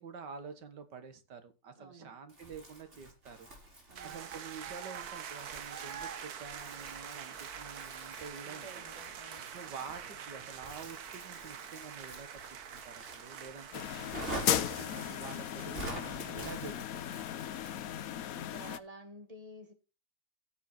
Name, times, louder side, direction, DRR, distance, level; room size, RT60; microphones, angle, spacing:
voice 1, 0.0-3.5 3.8-8.9 9.5-17.1, right 5 dB, 85° right, 2.1 m, -48 dB
voice 2, 1.8-2.1 3.9-4.4 8.4-9.5 14.0-14.3 18.3-19.7, right 1 dB, 20° right, 2.0 m, -51 dB
Crumpling crinkling, 2.3-18.1, right 1 dB, 40° right, 4.8 m, -48 dB
sound 1, 4.0-16.6, right 8 dB, 65° right, 1.5 m, -46 dB
sound 2, 13.7-18.8, left 11 dB, 65° left, 1.1 m, -36 dB
15.0 x 7.2 x 4.3 m
omnidirectional pair, 1.8 m